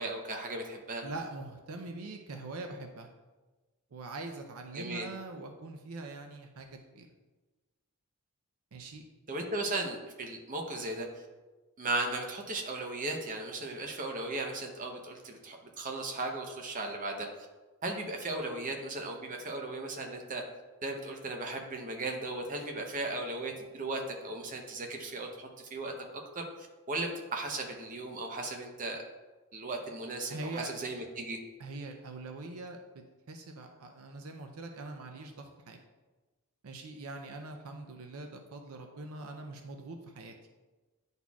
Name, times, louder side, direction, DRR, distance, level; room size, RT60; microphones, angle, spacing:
voice 1, 0.0-1.0 4.7-5.1 9.3-11.1 11.8-17.3 17.8-20.4 20.8-25.9 26.3-26.5 26.9-29.0 29.5-31.4, right 2 dB, 35° right, 2 dB, 0.8 m, -36 dB
voice 2, 1.0-3.1 3.9-7.1 8.7-9.0 30.3-30.7 31.6-32.8 33.3-35.8 36.6-40.3, right 2 dB, 70° right, 4 dB, 0.5 m, -43 dB
9.9 x 4.0 x 2.3 m, 1.2 s
head